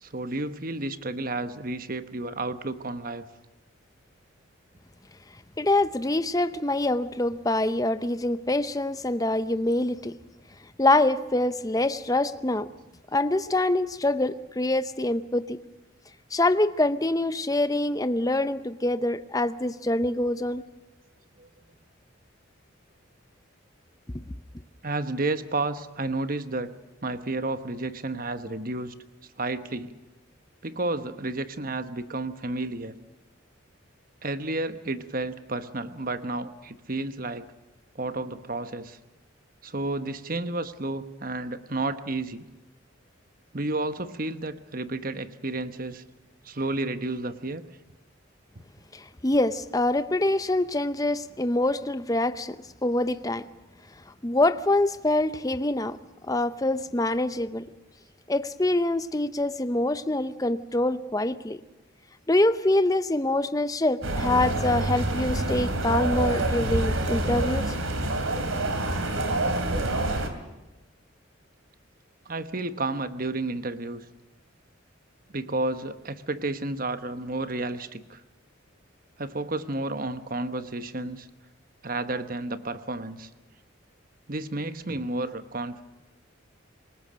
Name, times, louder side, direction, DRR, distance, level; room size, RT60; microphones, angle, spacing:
voice 1, 0.0-3.3 21.4-21.5 24.8-26.7 27.0-28.9 29.4-29.9 30.6-32.9 34.2-37.5 37.9-39.0 39.6-42.5 43.5-46.0 46.4-47.6 72.3-74.0 75.3-78.2 79.2-81.3 81.8-83.3 84.3-85.8, right 2 dB, 45° right, 11 dB, 1.1 m, -31 dB
voice 2, 5.6-10.2 10.8-12.7 13.1-15.6 16.3-20.6 48.9-52.6 52.8-53.5 54.2-56.0 56.3-57.6 58.3-61.6 62.3-67.7, left 2 dB, 15° left, 12 dB, 0.7 m, -25 dB
sound 1, 64.0-70.3, right 2 dB, 90° right, 3.0 m, -27 dB
27.0 x 18.5 x 6.3 m, 1.1 s
head